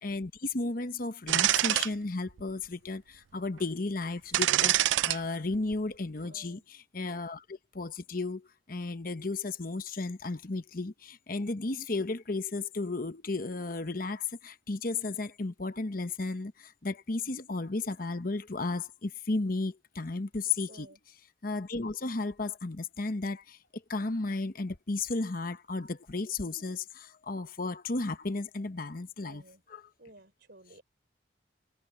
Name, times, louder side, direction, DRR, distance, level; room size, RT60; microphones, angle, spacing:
voice 1, 0.0-20.9 21.4-29.4 29.7-29.8, left 3 dB, 50° left, 1.0 m, -34 dB
sound 1, 1.3-1.9 2.4-2.5 4.3-5.2 5.5-5.7, right 14 dB, 85° right, 0.4 m, -25 dB
voice 2, 6.3-6.7 20.7-21.0 29.2-29.6 30.0-30.8, right 1 dB, 60° right, 4.1 m, -54 dB
head